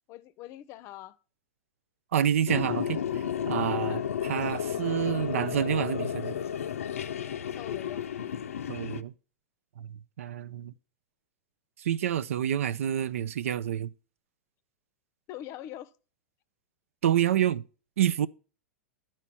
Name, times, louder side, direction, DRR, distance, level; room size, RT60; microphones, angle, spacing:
voice 1, 0.1-1.2 3.9-4.1 7.6-8.0 15.3-15.9, left 13 dB, 40° left, 0.6 m, -42 dB
voice 2, 2.1-6.4 8.7-9.1 9.8-10.7 11.8-13.9 17.0-17.6 18.0-18.3, right 10 dB, 75° right, 0.4 m, -28 dB
sound 1, 2.5-9.0, left 9 dB, 85° left, 0.5 m, -32 dB
11.0 x 4.4 x 6.0 m
hypercardioid pair, 110°, 7 cm